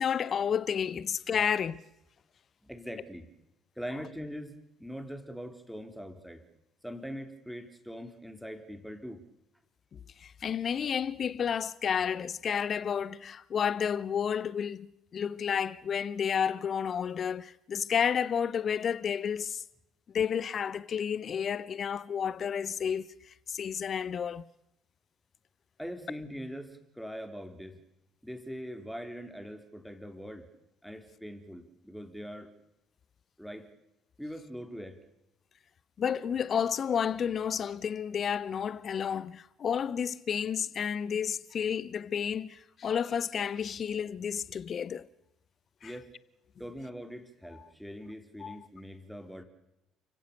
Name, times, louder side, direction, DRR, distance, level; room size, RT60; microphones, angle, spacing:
voice 1, 0.0-1.8 9.9-19.6 20.1-24.4 36.0-45.1 45.8-45.9 48.4-48.6, left 7 dB, 45° left, 0.8 m, -31 dB
voice 2, 2.6-3.3 3.8-6.4 6.8-9.2 25.8-27.8 28.2-30.5 30.8-32.5 33.4-33.7 34.2-35.0 45.8-46.1 46.6-49.4, equal, ahead, 3.6 m, -42 dB
29.5 x 16.5 x 6.9 m
figure-of-eight pair, 50°, 0 cm